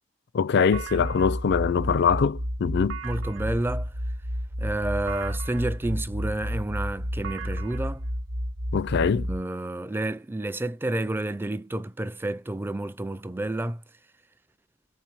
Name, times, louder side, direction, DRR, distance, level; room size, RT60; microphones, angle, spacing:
voice 1, 0.3-3.0 8.7-9.3, left 6 dB, 60° left, 0.4 m, -23 dB
sound 1, 0.7-9.4, equal, 80° right, 1.0 m, -31 dB
voice 2, 3.0-3.9 4.6-8.0 9.0-13.8, right 1 dB, 10° right, 0.4 m, -30 dB
4.5 x 3.9 x 5.4 m
head